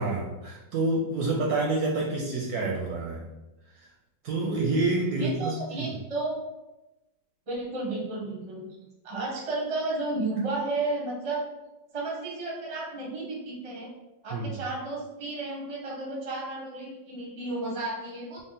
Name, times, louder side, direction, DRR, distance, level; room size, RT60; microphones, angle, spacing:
voice 1, 0.0-3.3 4.2-6.0 14.3-14.6, right 2 dB, 70° right, -2 dB, 0.9 m, -28 dB
voice 2, 5.2-6.3 7.5-8.7 9.0-11.4 11.9-13.9 14.2-18.4, right 2 dB, 35° right, -3 dB, 0.5 m, -32 dB
3.7 x 2.0 x 3.8 m, 1.0 s
omnidirectional pair, 2.0 m